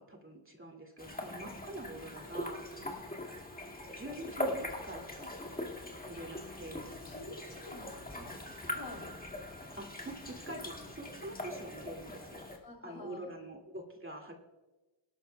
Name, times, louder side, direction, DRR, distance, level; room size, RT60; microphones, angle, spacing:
voice 1, 0.0-2.6 3.9-5.3 6.0-6.9 9.8-12.5 12.8-14.3, right 1 dB, 25° right, 1 dB, 2.2 m, -45 dB
sound 1, 1.0-12.6, left 1 dB, 15° left, 2.1 m, -42 dB
voice 2, 7.0-9.1 12.6-13.4, left 2 dB, 55° left, 2 dB, 3.1 m, -49 dB
22.5 x 12.5 x 2.3 m, 1.1 s
cardioid pair, 90°, 50 cm